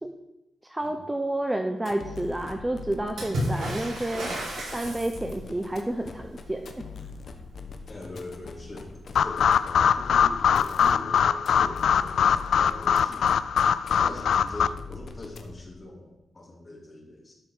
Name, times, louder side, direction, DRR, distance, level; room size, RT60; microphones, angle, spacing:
voice 1, 0.7-4.3 4.7-6.8, right 1 dB, 10° right, 5 dB, 0.8 m, -30 dB
sound 1, 1.8-15.8, left 4 dB, 50° left, 1.1 m, -43 dB
Water / Splash splatter, 3.2-5.6 8.8-8.9 9.2-10.0 11.1-11.2, equal, 90° right, 5.2 m, -32 dB
voice 2, 7.9-13.2 14.0-17.3, left 2 dB, 25° left, -1 dB, 3.1 m, -42 dB
sound 2, 9.1-14.7, left 8 dB, 75° left, 0.4 m, -22 dB
12.0 x 5.9 x 6.7 m, 0.89 s
wide cardioid pair, 145°, 0 cm